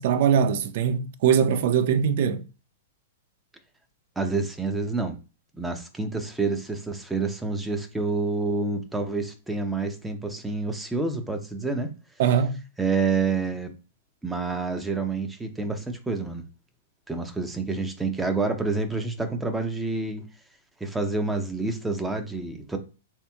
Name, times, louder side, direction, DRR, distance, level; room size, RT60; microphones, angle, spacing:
voice 1, 0.0-2.5 12.2-12.6, right 7 dB, 60° right, 0.4 m, -22 dB
voice 2, 4.2-5.2 5.6-11.9 12.8-13.7 14.2-16.4 17.1-20.2 20.8-22.8, right 3 dB, 10° right, 0.6 m, -28 dB
3.4 x 2.8 x 2.3 m
hypercardioid pair, 115°, 0 cm